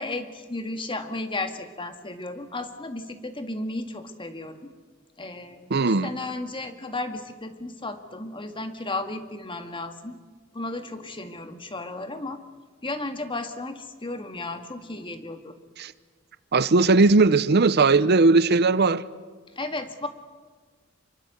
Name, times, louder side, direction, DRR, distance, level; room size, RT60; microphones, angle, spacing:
voice 1, 0.0-4.7 5.2-10.2 10.5-12.4 12.8-15.6 19.6-20.1, left 2 dB, 25° left, 7 dB, 1.9 m, -34 dB
voice 2, 5.7-6.1 15.8-15.9 16.5-19.0, right 3 dB, 55° right, 16 dB, 0.7 m, -18 dB
26.5 x 23.0 x 8.2 m, 1.4 s
head